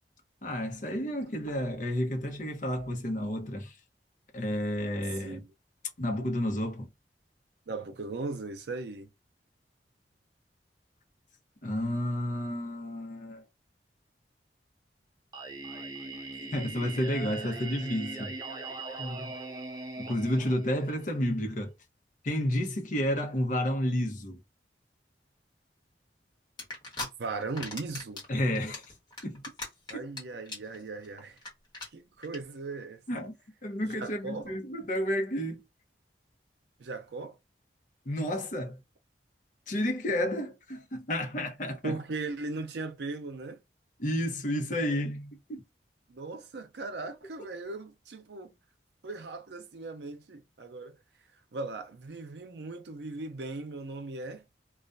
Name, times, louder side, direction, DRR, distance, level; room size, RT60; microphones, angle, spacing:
voice 1, 0.4-3.7 4.3-5.4 6.0-6.9 11.6-13.4 16.5-18.3 19.0-19.3 20.1-21.7 22.2-24.4 28.3-28.8 29.2-29.4 33.1-33.3 33.6-35.6 38.1-38.8 39.7-42.0 44.0-45.6, left 1 dB, 45° left, 0.8 m, -31 dB
voice 2, 7.7-9.1 27.2-28.2 29.9-31.4 31.9-33.0 33.8-34.4 36.8-37.4 41.8-43.6 46.1-48.5 49.0-51.0 51.5-54.4, right 3 dB, 70° right, 0.5 m, -38 dB
Singing, 15.3-21.3, right 3 dB, 25° right, 0.5 m, -41 dB
sound 1, 26.6-27.1 27.4-28.2 28.5-30.2 30.5-30.8 31.0-31.1 31.4-31.5 31.7-31.9 32.2-32.4, left 2 dB, 25° left, 1.2 m, -38 dB
2.3 x 2.2 x 2.5 m
head